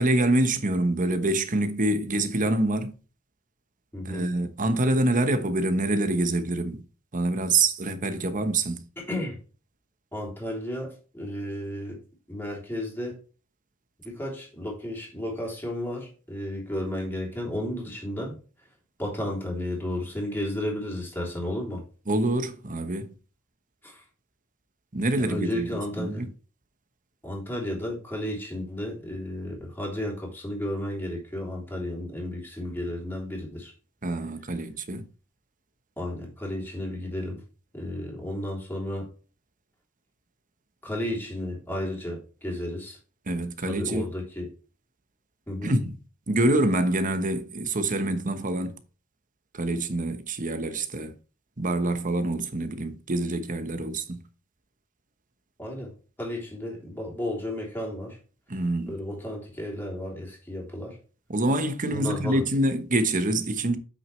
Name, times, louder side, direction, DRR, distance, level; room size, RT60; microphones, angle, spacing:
voice 1, 0.0-2.9 4.0-6.8 7.1-8.8 22.1-23.1 24.9-26.3 34.0-35.0 43.3-44.1 45.6-45.9 46.3-48.8 49.5-51.1 51.6-54.2 58.5-58.9 61.3-63.8, right 2 dB, 40° right, 1.0 m, -26 dB
voice 2, 3.9-4.3 9.0-9.4 10.1-12.0 12.3-13.2 14.0-18.4 19.0-21.8 23.8-24.0 25.3-26.3 27.2-33.7 36.0-37.4 37.7-39.1 40.8-43.0 43.6-44.5 45.5-45.7 55.6-55.9 56.2-58.2 58.9-61.0 61.9-62.4, left 1 dB, 10° left, 3.1 m, -33 dB
8.2 x 6.3 x 3.2 m
head